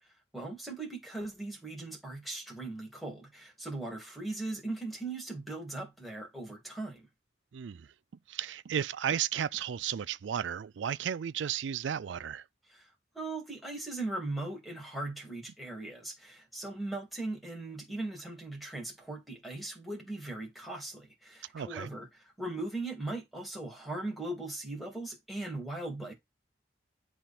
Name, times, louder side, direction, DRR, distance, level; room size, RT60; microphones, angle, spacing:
voice 1, 0.3-7.1 12.7-12.9 13.1-26.1, right 2 dB, ahead, 2.3 m, -39 dB
voice 2, 7.5-7.9 8.3-12.4 21.5-21.9, right 9 dB, 85° right, 0.4 m, -34 dB
10.0 x 3.6 x 4.2 m
head